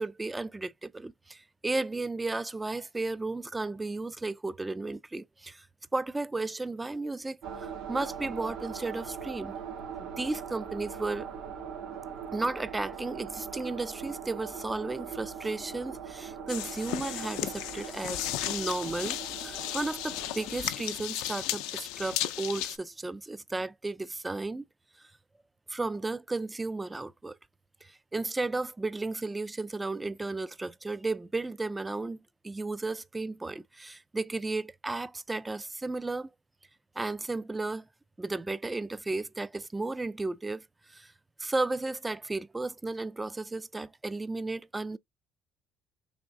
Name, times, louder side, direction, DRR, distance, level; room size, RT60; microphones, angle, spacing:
voice 1, 0.0-5.7 5.9-9.5 10.0-11.3 12.3-24.6 25.7-27.4 27.8-32.2 32.4-36.3 37.0-37.8 38.2-40.6 40.9-41.1 41.4-45.0, right 3 dB, 15° right, 0.3 m, -34 dB
sound 1, 7.4-20.5, right 7 dB, 75° right, 1.4 m, -41 dB
sound 2, 16.5-22.8, left 14 dB, 85° left, 0.4 m, -35 dB
3.5 x 3.0 x 3.4 m
supercardioid pair, 80°, 0 cm